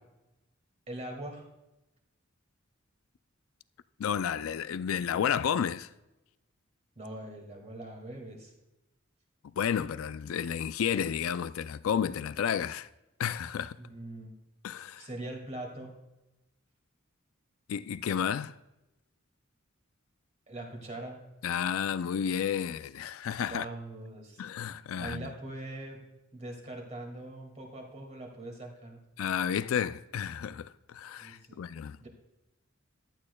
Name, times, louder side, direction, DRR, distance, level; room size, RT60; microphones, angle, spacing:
voice 1, 0.9-1.5 7.0-8.5 13.8-14.3 15.0-15.9 20.5-21.2 23.5-24.5 25.0-26.0 26.3-29.0 31.2-31.6 32.0-32.1, right 1 dB, 35° right, 2.1 m, -42 dB
voice 2, 4.0-5.9 9.4-12.9 13.2-13.8 14.6-15.1 17.7-18.5 21.4-23.7 24.4-25.3 29.2-32.1, left 8 dB, 90° left, 0.4 m, -31 dB
14.5 x 12.0 x 2.2 m
head